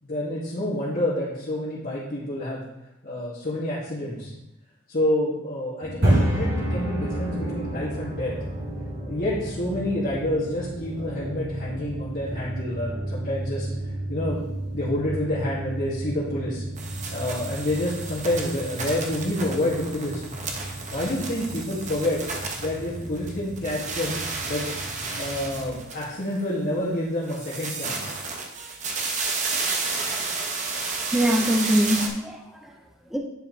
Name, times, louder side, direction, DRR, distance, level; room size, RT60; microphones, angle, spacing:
voice 1, 0.0-2.6 3.0-4.3 4.9-8.3 9.0-13.7 14.1-14.4 14.7-16.6 17.1-20.2 20.9-22.2 22.6-24.2 24.5-24.6 25.2-28.1, left 1 dB, 45° left, -11 dB, 2.3 m, -28 dB
sound 1, 5.8-25.7, right 1 dB, 55° right, 2.2 m, -31 dB
sound 2, 16.8-23.3 23.6-26.4 27.2-32.1, right 4 dB, 35° right, 0.9 m, -32 dB
voice 2, 30.8-33.2, equal, ahead, 1 dB, 0.6 m, -24 dB
10.5 x 4.9 x 3.3 m, 0.92 s
head